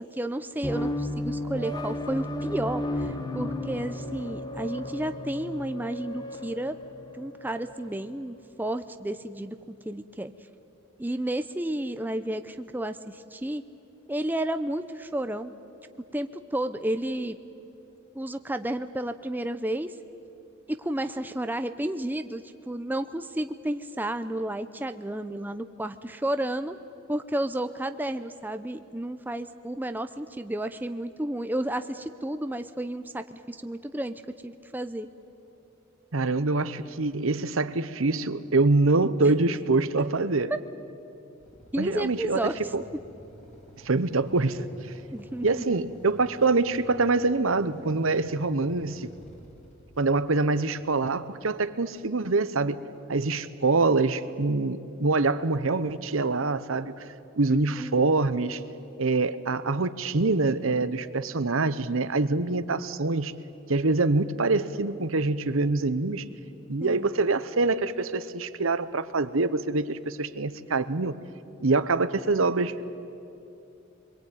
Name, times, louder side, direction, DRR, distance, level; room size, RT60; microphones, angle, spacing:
voice 1, 0.0-6.8 7.1-9.6 9.9-10.3 11.0-13.6 14.1-15.5 16.1-17.4 18.1-19.9 20.7-26.8 27.1-34.1 34.4-35.1 40.5-40.6 41.7-42.6 45.1-45.8 57.5-58.2 66.8-67.1, right 1 dB, 10° right, 9 dB, 0.6 m, -32 dB
sound 1, 0.6-8.0, left 1 dB, 20° left, 1.2 m, -34 dB
voice 2, 36.1-40.5 41.8-42.8 43.8-44.7 45.4-49.1 50.0-52.8 53.1-56.9 57.4-58.6 59.0-63.3 63.7-66.3 66.7-71.2 71.6-72.8, right 3 dB, 70° right, 13 dB, 0.9 m, -25 dB
Motorcycle / Idling, 41.4-51.3, equal, 35° left, 3.9 m, -51 dB
25.5 x 22.5 x 9.2 m, 2.8 s
head